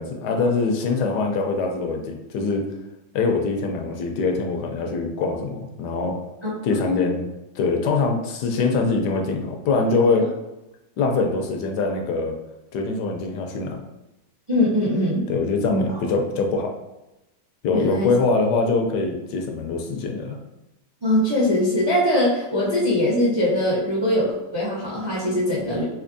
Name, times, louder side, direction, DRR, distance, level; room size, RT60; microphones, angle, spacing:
voice 1, 0.0-2.6 3.1-6.2 6.6-7.2 7.5-10.3 11.0-12.4 12.7-13.8 15.3-16.7 17.6-20.4, left 3 dB, 75° left, 3 dB, 1.1 m, -23 dB
voice 2, 14.5-15.3 15.7-15.8 17.7-18.1 21.0-25.8, left 1 dB, 35° right, -6 dB, 0.4 m, -22 dB
4.2 x 2.7 x 2.6 m, 0.96 s
omnidirectional pair, 1.9 m